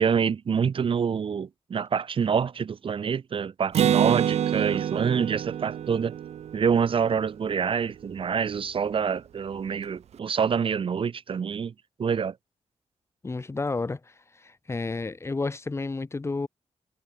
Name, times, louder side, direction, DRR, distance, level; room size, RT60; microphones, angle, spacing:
voice 1, 0.0-6.2 6.5-11.7 12.0-12.3, right 6 dB, 50° right, 1.0 m, -26 dB
Acoustic guitar, 3.7-7.4, right 10 dB, 65° right, 0.4 m, -26 dB
voice 2, 13.2-14.0 14.4-16.5, left 3 dB, 20° left, 2.2 m, -31 dB
wide cardioid pair, 165°, 12 cm